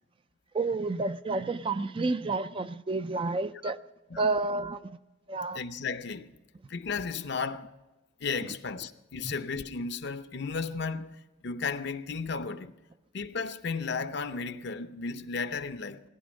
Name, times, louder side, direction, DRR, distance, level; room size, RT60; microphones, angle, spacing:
voice 1, 0.5-3.8 4.1-4.8 5.3-5.6 9.2-9.3, right 3 dB, 25° right, 0.4 m, -30 dB
voice 2, 5.5-6.3 6.7-7.7 8.2-11.2 11.4-12.7 13.1-16.0, left 5 dB, 60° left, 0.7 m, -34 dB
17.5 x 11.0 x 5.2 m
head